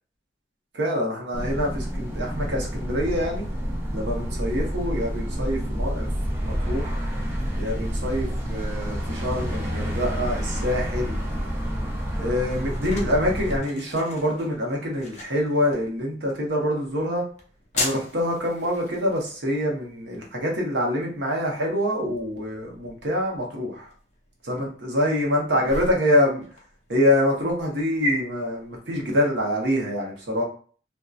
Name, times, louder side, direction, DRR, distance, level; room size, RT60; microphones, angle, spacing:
voice 1, 0.7-3.5 3.9-6.1 6.4-7.0 7.6-11.2 12.1-17.2 17.7-23.9 24.4-26.5 26.9-30.4, left 1 dB, 90° right, -1 dB, 0.8 m, -25 dB
sound 1, 1.3-13.6, equal, 15° right, 0.5 m, -28 dB
sound 2, 11.8-29.3, left 3 dB, 40° left, 0.5 m, -41 dB
2.6 x 2.1 x 2.3 m, 0.43 s
head